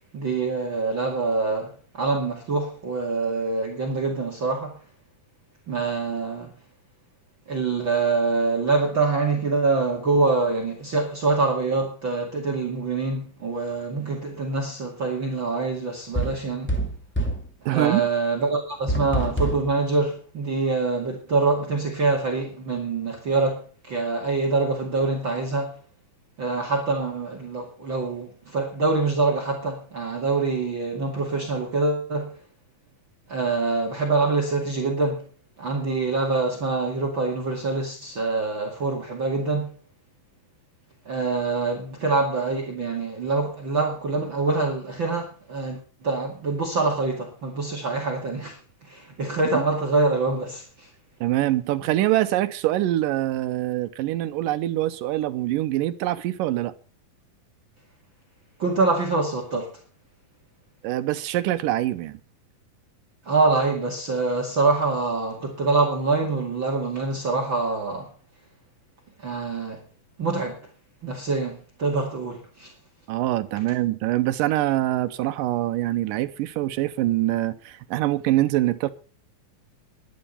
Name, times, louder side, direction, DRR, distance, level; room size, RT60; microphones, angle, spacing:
voice 1, 0.1-1.7 1.9-4.8 5.7-6.5 7.5-16.8 17.7-25.8 26.4-32.3 33.3-35.3 35.6-39.7 41.1-50.9 58.6-59.7 63.2-68.1 69.2-69.8 70.2-70.6 71.0-72.7, right 3 dB, 40° right, 2.6 m, -25 dB
sound 1, 16.1-17.5 18.9-19.7, right 1 dB, 5° left, 0.8 m, -26 dB
voice 2, 17.7-18.0 49.5-49.6 51.2-56.7 60.8-62.2 73.1-78.9, right 15 dB, 80° right, 2.4 m, -24 dB
12.0 x 11.0 x 5.5 m
omnidirectional pair, 3.9 m